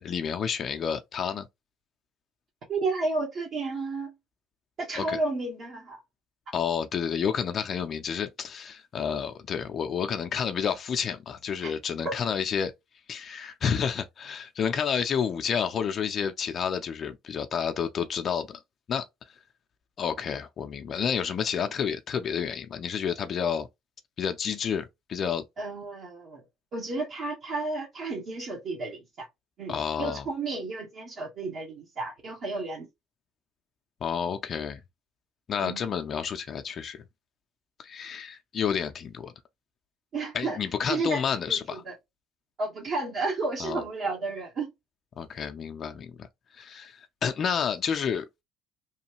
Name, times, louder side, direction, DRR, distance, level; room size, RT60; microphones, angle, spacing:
voice 1, 0.0-1.5 5.0-5.2 6.5-12.7 13.1-18.6 18.9-19.1 20.0-23.7 24.2-25.4 29.7-30.2 34.0-34.8 35.5-37.0 37.8-39.3 40.3-41.8 43.6-43.8 45.2-46.3 46.6-48.3, left 7 dB, 45° left, 0.4 m, -30 dB
voice 2, 2.7-4.1 4.8-6.0 11.6-11.7 12.0-12.1 25.6-26.4 26.7-29.3 29.6-32.9 35.6-35.9 40.1-40.6 40.9-41.2 41.5-41.6 42.6-44.7, right 3 dB, 55° right, 1.1 m, -32 dB
3.0 x 2.3 x 2.8 m
hypercardioid pair, 65°, 0 cm